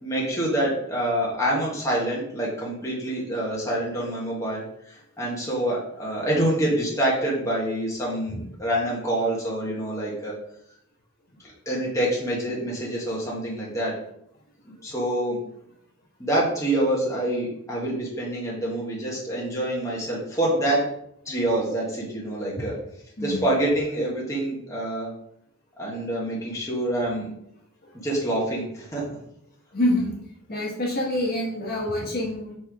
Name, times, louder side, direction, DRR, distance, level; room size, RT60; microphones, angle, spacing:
voice 1, 0.0-10.3 11.6-13.9 14.8-15.4 16.2-20.8 21.2-22.7 23.2-25.1 25.8-27.3 28.0-29.0, right 1 dB, 15° left, -5 dB, 1.4 m, -26 dB
voice 2, 23.2-23.5 27.8-27.9 29.7-30.1 30.5-32.6, left 1 dB, 45° left, -2 dB, 1.4 m, -26 dB
4.4 x 4.4 x 4.8 m, 0.75 s
head